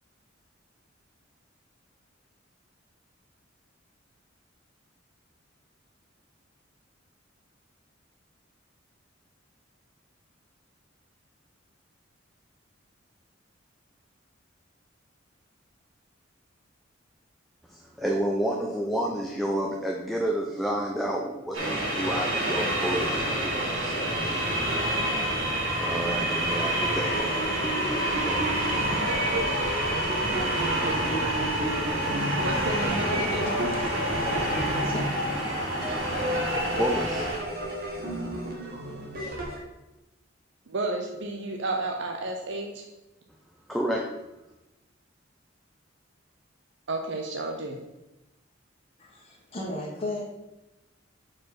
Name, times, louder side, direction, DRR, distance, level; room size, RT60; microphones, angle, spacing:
voice 1, 17.7-24.4 25.8-29.5 36.7-37.3 43.7-44.0, right 1 dB, ahead, -1 dB, 0.6 m, -31 dB
sound 1, 21.5-37.4, right 1 dB, 90° right, 2.0 m, -28 dB
sound 2, 26.8-39.6, equal, 50° right, 1.6 m, -33 dB
voice 2, 32.4-33.8 40.7-42.8 46.9-47.8, right 2 dB, 65° right, 2 dB, 0.8 m, -32 dB
voice 3, 33.0-35.9 36.3-36.6 49.0-50.3, left 1 dB, 30° left, -3 dB, 1.4 m, -38 dB
4.9 x 4.9 x 5.9 m, 0.98 s
head